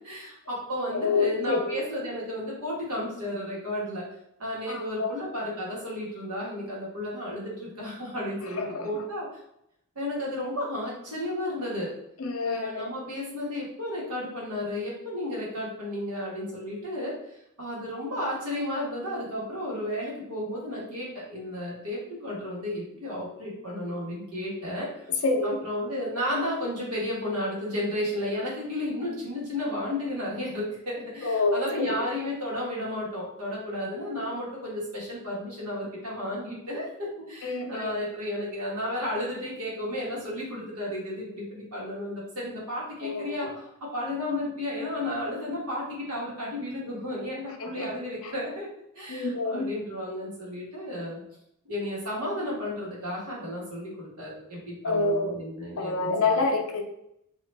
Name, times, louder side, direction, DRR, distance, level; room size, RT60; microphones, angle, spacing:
voice 1, 0.0-4.1 4.4-9.3 9.9-11.9 12.4-17.2 17.6-43.5 43.9-48.7 48.9-51.2 51.6-56.4, left 1 dB, 85° right, -5 dB, 1.4 m, -33 dB
voice 2, 0.9-1.8 4.7-5.1 8.6-8.9 12.2-12.9 25.1-25.6 31.2-32.0 37.4-38.0 43.0-43.5 47.6-48.3 49.1-49.7 54.8-55.4 55.8-56.8, left 3 dB, 65° left, 3 dB, 0.6 m, -28 dB
2.9 x 2.4 x 3.2 m, 0.79 s
head